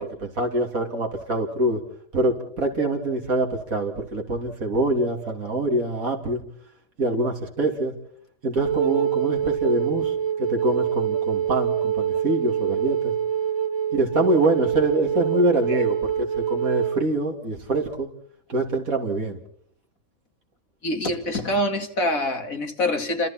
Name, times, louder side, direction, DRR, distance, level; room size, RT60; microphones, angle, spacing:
voice 1, 0.0-1.8 2.1-6.4 7.0-7.9 8.4-13.1 13.9-18.1 18.5-19.4, right 2 dB, 80° right, 3.4 m, -25 dB
Wind instrument woodwind instrument, 8.6-17.0, right 9 dB, 60° right, 1.8 m, -25 dB
voice 2, 20.8-23.3, left 1 dB, 80° left, 3.0 m, -25 dB
29.0 x 26.5 x 4.4 m
omnidirectional pair, 1.4 m